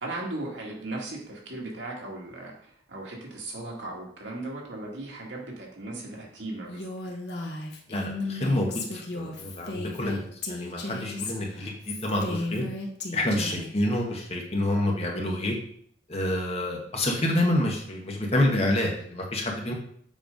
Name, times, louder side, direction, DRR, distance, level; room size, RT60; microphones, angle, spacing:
voice 1, 0.0-7.2 13.4-13.6, right 2 dB, 85° right, -1 dB, 1.9 m, -37 dB
Female speech woman speaking, 6.7-13.7, left 2 dB, 65° left, 1.2 m, -34 dB
voice 2, 7.9-12.6 13.1-15.5 16.1-19.7, left 1 dB, 35° left, 0 dB, 1.3 m, -28 dB
7.5 x 3.4 x 5.2 m, 0.62 s
head